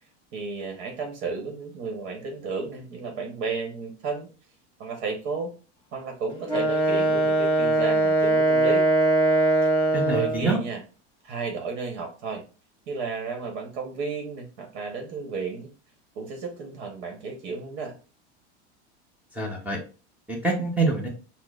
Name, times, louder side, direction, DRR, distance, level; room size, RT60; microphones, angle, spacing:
voice 1, 0.3-4.3 4.8-5.5 5.9-8.9 10.1-10.8 11.2-12.4 12.9-15.7 16.1-18.0, right 4 dB, 65° right, 3 dB, 1.0 m, -33 dB
Wind instrument woodwind instrument, 6.5-10.5, right 2 dB, 10° left, 1.3 m, -21 dB
voice 2, 9.9-10.6 19.4-19.8 20.3-21.1, right 2 dB, 5° right, -2 dB, 0.7 m, -25 dB
5.9 x 2.1 x 2.4 m, 0.36 s
supercardioid pair, 130°, 34 cm